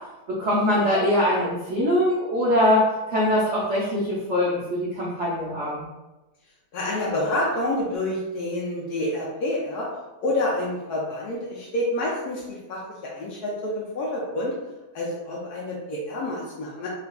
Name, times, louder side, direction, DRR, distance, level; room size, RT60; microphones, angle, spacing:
voice 1, 0.3-2.8 3.1-5.8, left 1 dB, 85° right, -6 dB, 0.6 m, -22 dB
voice 2, 6.7-9.9 10.2-14.5 14.9-16.9, left 1 dB, 70° left, -4 dB, 0.9 m, -28 dB
4.7 x 2.4 x 2.3 m, 1.1 s
omnidirectional pair, 2.2 m